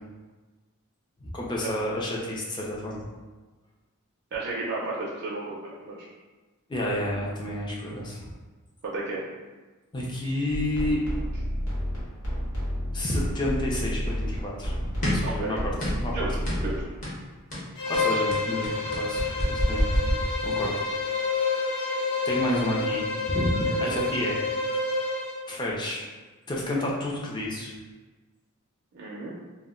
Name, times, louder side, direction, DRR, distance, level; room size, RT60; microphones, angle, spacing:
voice 1, 1.2-3.0 6.7-8.3 9.9-11.0 12.9-15.7 16.0-16.3 17.9-19.9 20.4-20.7 21.2-21.5 22.2-24.4 25.5-26.0 26.5-27.8, left 1 dB, 20° left, -4 dB, 0.4 m, -30 dB
voice 2, 4.3-6.1 8.8-9.2 15.2-15.6 16.1-16.4 16.6-16.8 19.6-19.7 23.7-23.9 28.9-29.3, right 3 dB, 50° right, -5 dB, 0.4 m, -33 dB
sound 1, 10.5-16.9, equal, 80° left, 0.9 m, -31 dB
sound 2, 15.0-15.4 15.8-16.1 16.4-16.7 17.0-17.2 17.5-20.8, equal, 35° left, 0.8 m, -28 dB
Bowed string instrument, 17.8-25.4, left 3 dB, 65° left, 0.6 m, -28 dB
2.1 x 2.1 x 3.6 m, 1.3 s
head